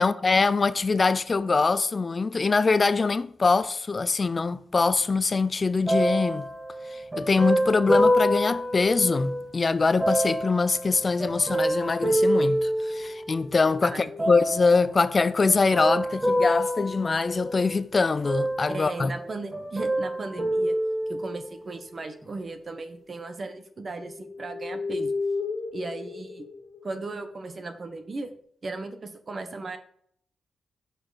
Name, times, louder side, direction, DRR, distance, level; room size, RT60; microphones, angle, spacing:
voice 1, 0.0-6.5 6.9-19.1, left 4 dB, 35° left, 0.3 m, -23 dB
sound 1, 5.9-9.5 10.0-13.5 14.2-14.8 15.5-17.8 18.2-19.3 19.5-21.6 22.2-22.3, equal, 20° right, 2.1 m, -26 dB
sound 2, 13.0-14.8 17.1-18.0 18.7-20.9 21.7-22.0 22.3-22.8 23.4-28.2, left 4 dB, 70° left, 0.8 m, -37 dB
voice 2, 13.8-14.4 18.7-20.8 21.1-25.1 25.7-26.4 26.8-28.3 28.6-29.8, right 3 dB, 40° right, 0.9 m, -36 dB
6.2 x 5.0 x 4.0 m
cardioid pair, 105°, 0 cm